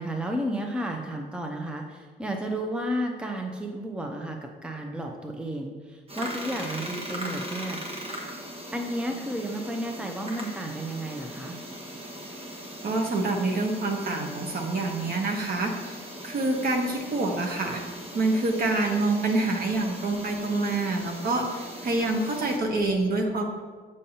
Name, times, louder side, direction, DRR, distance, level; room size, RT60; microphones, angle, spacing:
voice 1, 0.0-8.1 8.7-11.6, right 1 dB, 5° right, 3 dB, 0.6 m, -32 dB
sound 1, 6.1-22.6, equal, 30° right, 1.4 m, -39 dB
voice 2, 12.8-16.0 16.2-17.8 18.1-23.4, right 2 dB, 50° right, 2 dB, 1.1 m, -26 dB
6.9 x 6.4 x 2.8 m, 1.5 s
cardioid pair, 90°, 20 cm